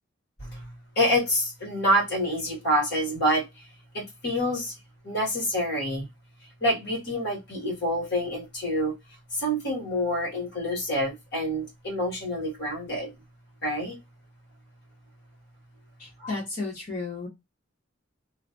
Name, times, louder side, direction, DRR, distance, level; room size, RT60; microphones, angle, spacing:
voice 1, 0.9-3.4 3.9-4.7 5.0-6.1 6.6-8.9 9.3-13.1 13.6-13.9 16.2-16.3, equal, 55° left, 1.8 m, -27 dB
voice 2, 16.0-17.3, left 3 dB, 40° left, 1.5 m, -33 dB
3.0 x 2.5 x 2.6 m
head